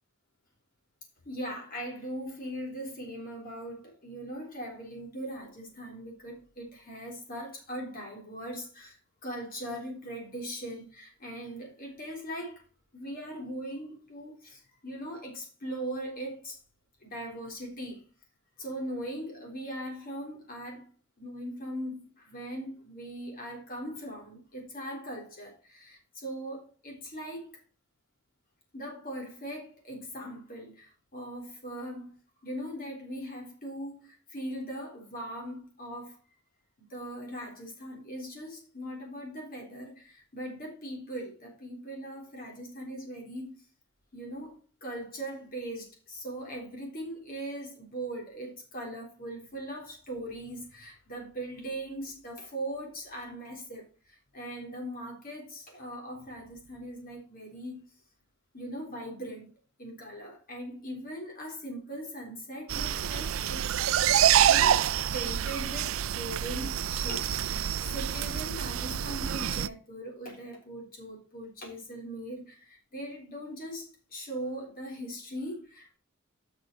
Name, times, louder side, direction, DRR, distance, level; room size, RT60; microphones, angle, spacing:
voice 1, 1.3-12.6 12.9-16.6 17.0-18.0 18.6-20.9 21.2-27.6 28.7-32.1 32.4-36.2 36.9-43.5 44.1-57.9 58.5-59.5 59.8-63.7 64.4-67.3 67.6-76.0, right 1 dB, 45° left, 3.7 m, -40 dB
sound 1, 62.7-69.7, right 10 dB, 70° right, 0.4 m, -27 dB
8.2 x 6.3 x 4.5 m
head